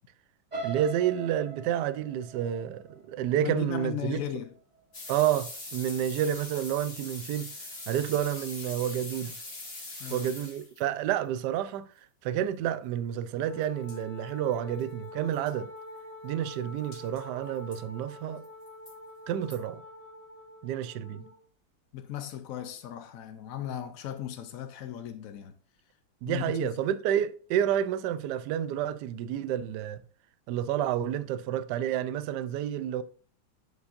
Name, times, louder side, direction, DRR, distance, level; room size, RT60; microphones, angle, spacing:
sound 1, 0.5-4.5 4.9-5.3 5.6-5.7, right 5 dB, 25° right, 1.2 m, -41 dB
voice 1, 0.6-4.4 5.1-7.5 7.9-9.4 10.1-11.9 12.2-15.7 16.2-18.4 19.3-19.8 20.6-21.2 26.2-30.0 30.5-33.0, right 10 dB, 75° right, 0.9 m, -30 dB
voice 2, 3.4-4.5 10.0-10.3 21.2-21.3 21.9-25.6 26.2-26.7, left 10 dB, 75° left, 0.7 m, -36 dB
sound 2, 4.9-10.8 13.6-13.7 13.9-14.0 14.5-14.6 14.8-14.9 15.3-15.5 16.9-17.2 17.7-17.8 18.4-18.9 19.5-19.6, left 2 dB, 30° left, 2.0 m, -42 dB
Wind instrument woodwind instrument, 13.4-21.4, left 1 dB, 60° left, 2.2 m, -46 dB
9.3 x 5.2 x 2.6 m
omnidirectional pair, 2.2 m